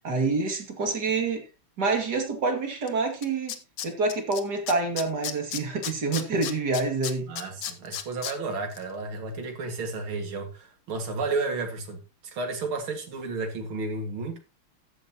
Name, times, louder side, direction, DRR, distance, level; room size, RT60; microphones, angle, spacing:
voice 1, 0.0-1.4 1.8-3.6 3.8-7.3, right 3 dB, 50° right, 2.9 m, -27 dB
Tools, 2.9-3.0 3.2-4.4 4.7-8.3 8.7-8.8, left 10 dB, 70° left, 1.7 m, -33 dB
voice 2, 7.3-12.0 12.3-14.4, right 3 dB, 70° right, 2.9 m, -32 dB
14.0 x 9.6 x 3.0 m
omnidirectional pair, 2.4 m